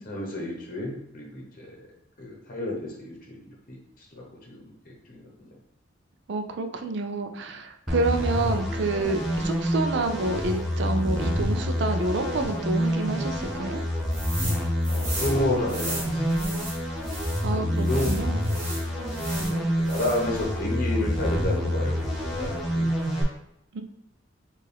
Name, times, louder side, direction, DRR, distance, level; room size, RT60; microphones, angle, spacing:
voice 1, 0.0-1.9 2.2-5.3 8.2-8.3 14.9-16.5 17.5-18.2 18.6-18.9 19.3-22.9, left 1 dB, 50° left, -1 dB, 0.9 m, -31 dB
voice 2, 6.3-13.8 17.4-17.7 18.1-18.4 23.7-23.8, right 2 dB, 65° right, 7 dB, 0.4 m, -28 dB
sound 1, 7.9-23.2, equal, ahead, 0.7 m, -27 dB
sound 2, 14.1-14.6 14.8-17.4 17.8-19.5 19.8-20.4, right 2 dB, 40° right, 1.5 m, -36 dB
4.5 x 2.4 x 3.4 m, 0.75 s
head